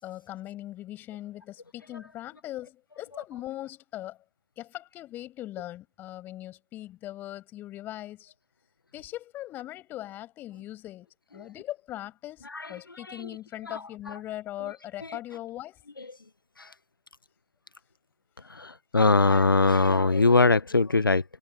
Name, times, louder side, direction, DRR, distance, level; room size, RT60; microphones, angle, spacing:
voice 1, 0.0-4.2 4.6-8.3 8.9-15.8, left 14 dB, 15° left, 7.4 m, -40 dB
voice 2, 18.5-21.2, left 3 dB, 80° left, 1.1 m, -22 dB
figure-of-eight pair, 135°, 11 cm